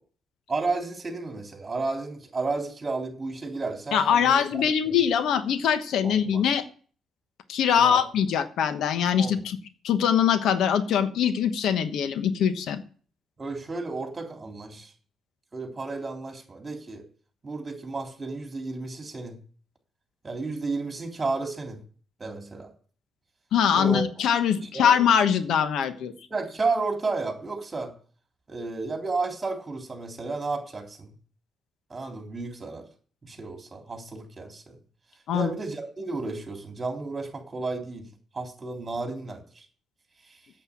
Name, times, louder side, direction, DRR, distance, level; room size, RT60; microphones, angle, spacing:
voice 1, 0.5-4.7 6.0-6.4 7.8-8.0 9.1-9.4 13.4-14.9 15.5-17.0 17.4-19.4 20.2-21.8 22.2-22.7 23.7-24.0 24.7-24.9 26.3-27.9 28.5-31.1 31.9-32.9 33.2-34.8 35.3-38.1 38.3-39.7, right 3 dB, 25° right, 3 dB, 3.6 m, -32 dB
voice 2, 3.9-6.6 7.5-9.6 9.8-12.8 23.5-26.1 35.3-35.5, left 8 dB, 75° left, 11 dB, 1.2 m, -23 dB
8.5 x 7.9 x 8.8 m, 0.43 s
cardioid pair, 90°, 0 cm